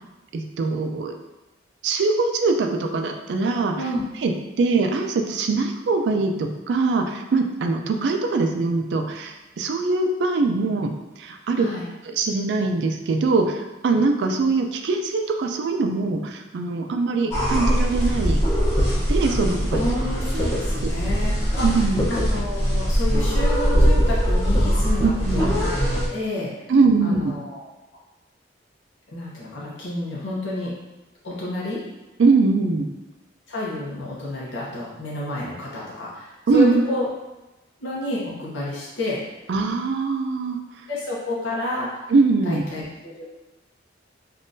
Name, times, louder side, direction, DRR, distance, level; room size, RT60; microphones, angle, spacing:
voice 1, 0.3-1.1 1.8-3.8 4.2-11.7 12.2-18.4 18.9-19.8 20.8-20.9 21.6-22.1 25.0-25.6 26.7-27.3 32.2-32.9 36.5-36.8 39.5-40.6 42.1-42.6, right 3 dB, 65° right, 5 dB, 0.3 m, -22 dB
voice 2, 11.6-11.9 19.7-21.6 22.1-26.5 27.0-27.7 29.1-30.7 31.2-31.8 33.5-37.1 37.8-39.2 40.9-42.0 42.4-43.3, left 1 dB, 80° left, -6 dB, 0.8 m, -30 dB
sound 1, 17.3-26.1, equal, 15° left, 0.8 m, -21 dB
3.5 x 2.4 x 2.6 m, 1.0 s
head